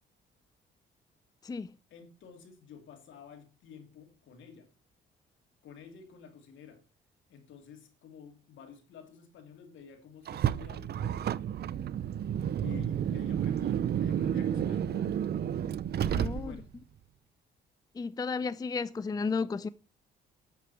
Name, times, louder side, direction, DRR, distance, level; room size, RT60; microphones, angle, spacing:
voice 1, 1.9-4.7 5.6-6.8 7.3-11.3 12.6-15.1 16.0-16.6, left 6 dB, 75° left, 2.8 m, -50 dB
Car, 10.3-16.8, right 9 dB, 55° right, 0.6 m, -31 dB
voice 2, 16.1-16.6 18.0-19.7, left 4 dB, 20° left, 0.5 m, -33 dB
8.5 x 6.9 x 7.0 m
cardioid pair, 90°, 20 cm